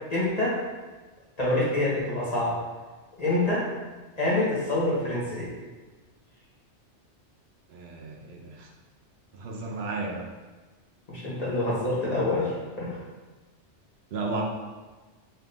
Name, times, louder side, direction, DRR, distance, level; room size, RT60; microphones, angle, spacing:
voice 1, 0.1-0.6 1.4-2.6 3.2-3.7 4.2-5.5 11.1-13.0, left 2 dB, 35° left, -6 dB, 1.0 m, -26 dB
voice 2, 7.7-8.7 9.3-10.3 14.1-14.4, right 3 dB, 65° right, 0 dB, 0.8 m, -33 dB
4.3 x 2.6 x 3.4 m, 1.3 s
omnidirectional pair, 1.2 m